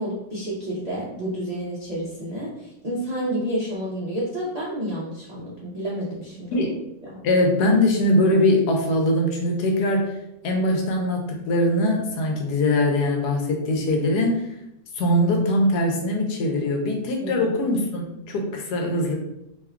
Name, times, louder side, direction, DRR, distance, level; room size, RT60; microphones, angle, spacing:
voice 1, 0.0-6.6 7.0-7.2 17.2-17.5, right 1 dB, 75° right, -7 dB, 0.3 m, -30 dB
voice 2, 7.2-10.1 10.4-14.4 14.9-19.2, left 1 dB, 80° left, 1 dB, 1.2 m, -22 dB
3.0 x 2.2 x 3.5 m, 0.84 s
omnidirectional pair, 1.8 m